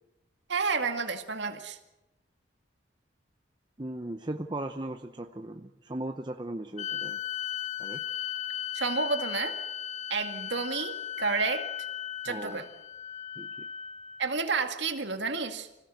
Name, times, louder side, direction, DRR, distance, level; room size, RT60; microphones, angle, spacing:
voice 1, 0.5-1.8 8.7-9.6 10.1-11.7 12.2-12.7 14.2-15.7, right 4 dB, 70° right, 6 dB, 2.1 m, -30 dB
voice 2, 3.8-7.2 7.8-8.0 12.3-12.6 13.4-13.7, right 1 dB, 25° right, 5 dB, 0.8 m, -37 dB
sound 1, 6.8-14.3, left 10 dB, 35° left, 0.7 m, -36 dB
25.5 x 17.0 x 8.0 m, 0.96 s
head